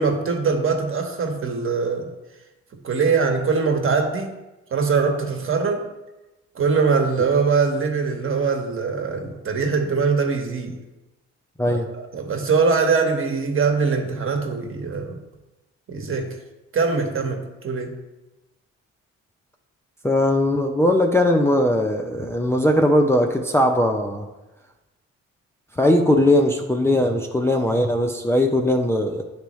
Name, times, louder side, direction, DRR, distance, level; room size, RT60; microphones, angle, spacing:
voice 1, 0.0-2.1 2.8-4.3 4.7-5.9 6.5-10.8 11.7-11.8 12.1-15.2 15.9-16.4 16.7-17.9, right 5 dB, 45° right, 4 dB, 1.2 m, -22 dB
voice 2, 20.0-24.3 25.7-29.2, left 1 dB, 10° left, 2 dB, 0.5 m, -19 dB
10.0 x 3.4 x 3.1 m, 1.0 s
cardioid pair, 90°, 30 cm